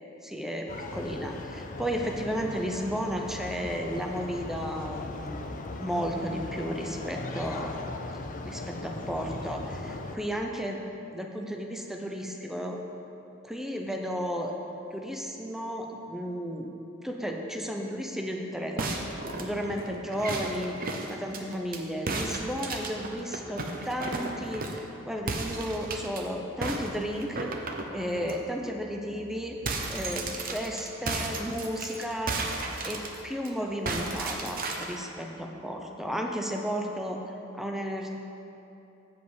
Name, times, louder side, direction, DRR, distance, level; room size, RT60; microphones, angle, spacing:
voice 1, 0.2-5.5 5.8-7.7 8.4-10.8 11.1-12.8 13.4-14.6 14.9-16.8 17.0-18.9 19.4-27.5 27.9-29.6 29.9-32.4 32.8-37.2 37.5-38.2, equal, ahead, 1 dB, 0.6 m, -33 dB
sound 1, 0.7-10.2, left 2 dB, 40° left, 0.5 m, -38 dB
sound 2, 18.8-21.8 22.1-24.9 25.3-26.2 26.6-28.4 28.8-28.9 29.2-33.5 33.9-35.0, right 3 dB, 45° right, 0.7 m, -34 dB
7.9 x 7.4 x 5.0 m, 2.9 s
head